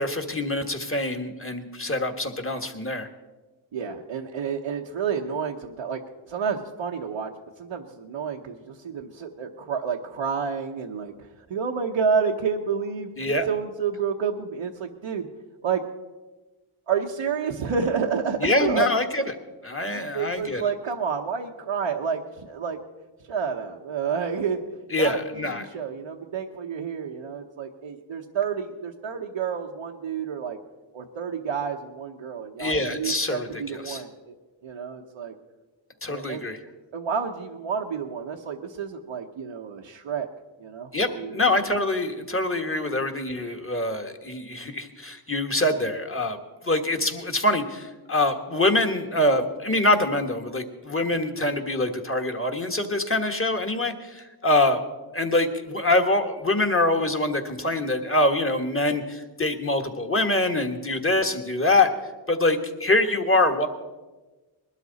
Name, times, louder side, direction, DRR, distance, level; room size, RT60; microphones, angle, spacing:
voice 1, 0.0-3.1 13.2-13.5 18.4-19.3 19.6-20.6 24.9-25.6 32.6-34.0 36.0-36.6 40.9-46.4 46.6-54.8 55.1-61.9 62.3-63.7, left 2 dB, 25° left, 6 dB, 1.6 m, -24 dB
voice 2, 3.7-6.0 6.3-7.3 7.6-11.1 11.5-15.3 15.6-15.8 16.9-18.9 19.9-22.8 23.3-24.6 24.9-30.6 30.9-34.3 34.6-35.3 36.1-36.5 36.9-40.3 40.6-41.4, right 6 dB, 90° right, -1 dB, 1.0 m, -29 dB
20.5 x 12.5 x 4.1 m, 1.2 s
cardioid pair, 55°, 50 cm